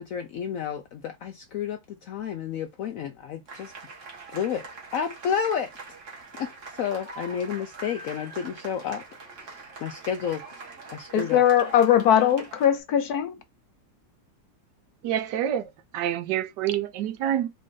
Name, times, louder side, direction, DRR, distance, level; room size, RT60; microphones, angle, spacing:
voice 1, 0.0-3.7 4.3-4.6 4.9-5.7 6.4-9.0 9.4-10.4 10.9-11.4, left 8 dB, 85° left, 0.7 m, -31 dB
sound 1, 3.5-12.8, right 4 dB, 45° right, 1.4 m, -43 dB
voice 2, 11.1-13.4, left 9 dB, 70° left, 1.0 m, -20 dB
voice 3, 15.0-17.5, right 10 dB, 75° right, 1.2 m, -27 dB
4.2 x 2.6 x 3.7 m
omnidirectional pair, 2.0 m